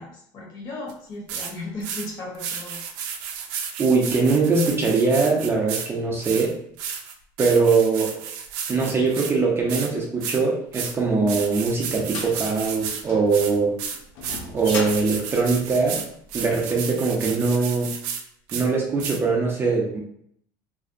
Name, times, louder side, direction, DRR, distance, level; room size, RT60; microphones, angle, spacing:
voice 1, 0.0-2.8, left 2 dB, 45° left, -3 dB, 1.0 m, -36 dB
sound 1, 0.9-1.0 1.3-1.5 1.8-2.1 2.3-5.9 6.2-9.3 9.7-9.9 10.2-10.4 10.7-10.9 11.3-13.0 13.3-18.2 18.5-18.7 19.0-19.2, right 7 dB, 80° right, 0.4 m, -32 dB
voice 2, 3.8-6.6 7.4-8.2 8.7-13.8 14.5-16.0 16.3-17.9 18.5-20.0, right 4 dB, 25° right, -2 dB, 0.5 m, -22 dB
sound 2, 11.1-16.4, left 3 dB, 85° left, 0.5 m, -37 dB
2.5 x 2.0 x 2.5 m, 0.68 s
supercardioid pair, 115°, 10 cm